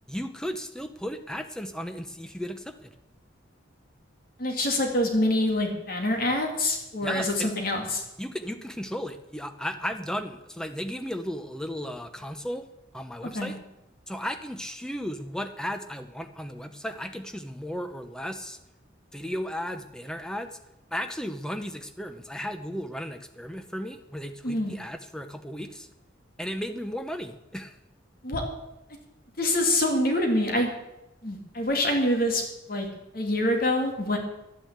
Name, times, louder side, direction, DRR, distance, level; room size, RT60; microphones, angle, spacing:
voice 1, 0.1-2.9 7.0-7.5 8.2-12.7 12.9-13.6 14.1-18.6 19.1-20.6 20.9-25.9 26.4-27.8, equal, 5° left, 8 dB, 0.8 m, -35 dB
voice 2, 4.4-8.0 13.3-13.5 24.4-24.7 28.2-28.4 29.4-30.7 31.2-32.4 32.7-32.9 33.1-34.2, left 1 dB, 50° left, 2 dB, 2.4 m, -25 dB
12.0 x 9.7 x 8.1 m, 0.91 s
head